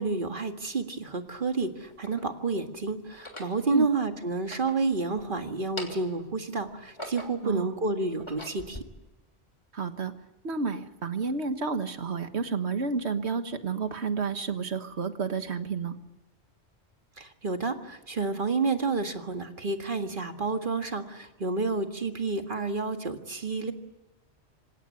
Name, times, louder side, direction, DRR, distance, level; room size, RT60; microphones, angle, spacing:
voice 1, 0.0-8.8 17.2-23.7, right 3 dB, 50° right, 5 dB, 2.0 m, -30 dB
sound 1, 0.6-0.7 1.5-2.3 3.1-3.6 4.3-5.3 5.6-6.2 6.7-7.5 8.0-8.8, left 1 dB, 25° left, 3.3 m, -42 dB
voice 2, 7.4-7.8 9.7-10.1 10.4-16.0, right 4 dB, 80° right, 9 dB, 1.7 m, -30 dB
26.5 x 17.0 x 9.7 m, 1.0 s
omnidirectional pair, 1.1 m